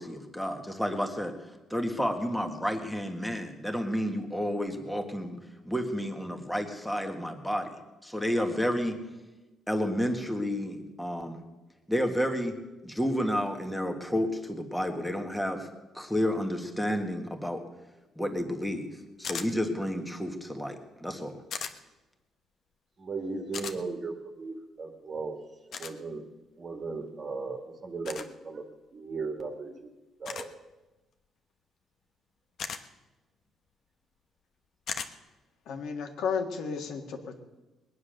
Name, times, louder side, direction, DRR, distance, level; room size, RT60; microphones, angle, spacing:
voice 1, 0.0-1.3 1.7-5.4 5.7-7.8 8.0-9.0 9.7-11.4 11.9-12.6 12.8-15.7 15.9-17.6 18.2-18.9 19.2-21.4, equal, 5° left, 4 dB, 1.6 m, -30 dB
sound 1, 19.2-19.5 21.5-21.7 23.5-23.8 25.7-25.9 28.0-28.3 30.3-30.5 32.6-32.8 34.9-35.1, left 6 dB, 55° left, 1.0 m, -36 dB
voice 2, 23.0-25.4 25.7-26.2 26.6-28.6 28.9-29.9 30.2-30.5, right 4 dB, 35° right, 5 dB, 1.8 m, -36 dB
voice 3, 35.7-37.4, left 6 dB, 75° left, 4 dB, 1.9 m, -33 dB
20.5 x 9.7 x 6.6 m, 1.1 s
cardioid pair, 140°, 0 cm